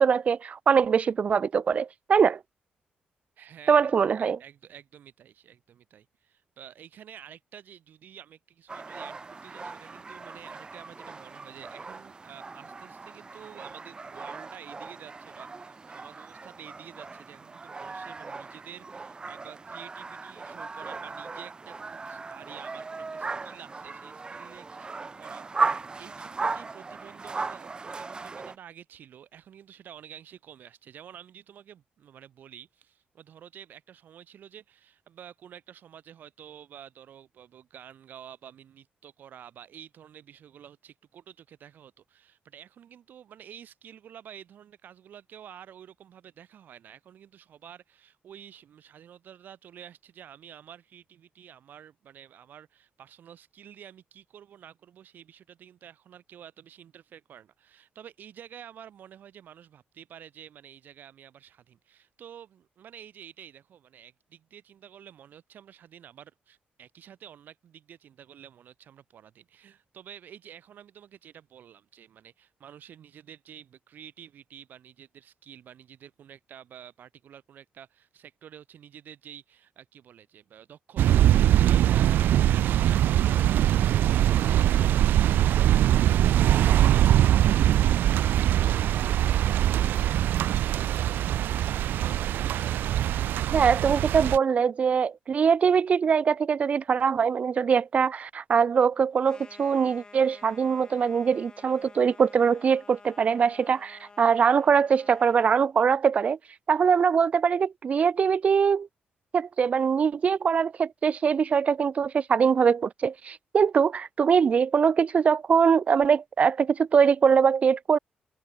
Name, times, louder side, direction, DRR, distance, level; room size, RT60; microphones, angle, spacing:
voice 1, 0.0-2.4 3.7-4.4 93.5-106.4 106.7-108.9 109.3-118.0, right 6 dB, 45° right, 0.7 m, -22 dB
voice 2, 3.4-91.9, right 9 dB, 65° right, 6.1 m, -49 dB
sound 1, 8.7-28.6, right 4 dB, 25° right, 7.1 m, -37 dB
sound 2, 81.0-94.4, right 12 dB, 80° right, 0.5 m, -22 dB
sound 3, 99.2-105.7, left 4 dB, 25° left, 6.0 m, -51 dB
cardioid pair, 115°, 3 cm